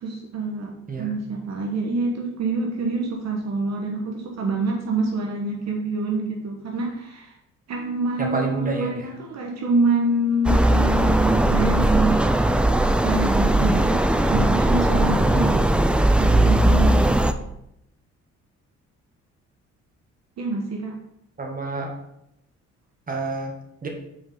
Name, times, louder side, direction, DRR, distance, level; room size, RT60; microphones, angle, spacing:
voice 1, 0.0-7.3 7.7-12.2 13.0-15.7 16.2-17.0 20.4-21.0, right 3 dB, 60° right, 0 dB, 1.2 m, -26 dB
voice 2, 8.2-9.1 21.4-21.9 23.1-23.5 23.8-23.9, right 3 dB, 30° right, 1 dB, 1.6 m, -28 dB
sound 1, 10.4-17.3, right 1 dB, 5° right, 0.4 m, -19 dB
5.3 x 4.8 x 5.4 m, 0.80 s
cardioid pair, 90°, 30 cm